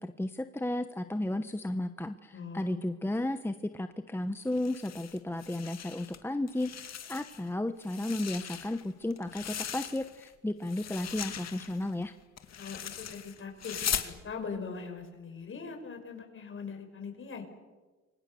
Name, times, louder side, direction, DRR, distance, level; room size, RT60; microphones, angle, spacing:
voice 1, 0.0-12.1, left 1 dB, 10° left, 9 dB, 1.0 m, -34 dB
voice 2, 2.3-2.8 12.6-17.4, left 5 dB, 45° left, 4 dB, 5.8 m, -41 dB
sound 1, 4.5-6.2 6.5-7.5 7.8-10.3 10.6-14.1, left 9 dB, 60° left, 2.2 m, -39 dB
29.5 x 24.0 x 6.9 m, 1.3 s
cardioid pair, 90°, 30 cm